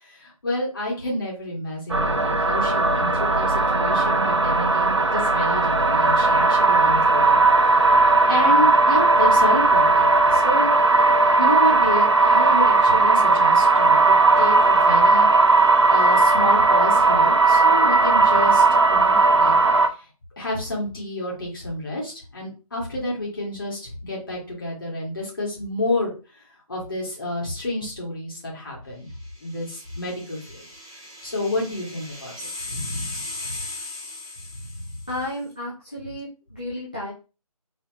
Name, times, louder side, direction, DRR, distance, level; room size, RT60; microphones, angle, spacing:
voice 1, 0.0-10.7 11.4-18.6 18.9-19.6 20.0-20.1 20.4-26.4 26.7-29.1 29.4-30.7 31.2-33.6 34.6-34.9, left 1 dB, 35° left, -4 dB, 2.2 m, -30 dB
sound 1, 1.9-19.9, right 3 dB, 50° right, 0.6 m, -17 dB
sound 2, 29.2-35.2, left 2 dB, 10° right, 1.0 m, -38 dB
voice 2, 35.1-37.1, left 1 dB, 15° left, -7 dB, 0.5 m, -32 dB
4.3 x 3.9 x 3.0 m, 0.33 s
figure-of-eight pair, 160°, 20 cm